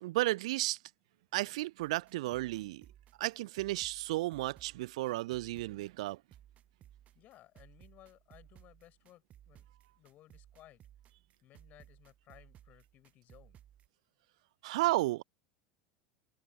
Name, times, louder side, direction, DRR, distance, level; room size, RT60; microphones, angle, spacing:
voice 1, 0.0-0.8 1.3-2.8 3.2-6.2 14.6-15.2, right 18 dB, 70° right, 0.6 m, -33 dB
sound 1, 1.8-13.9, right 11 dB, 40° right, 3.2 m, -60 dB
voice 2, 7.1-9.7 10.0-10.8 11.4-13.6, left 14 dB, 50° left, 7.5 m, -60 dB
hypercardioid pair, 85°, 3 cm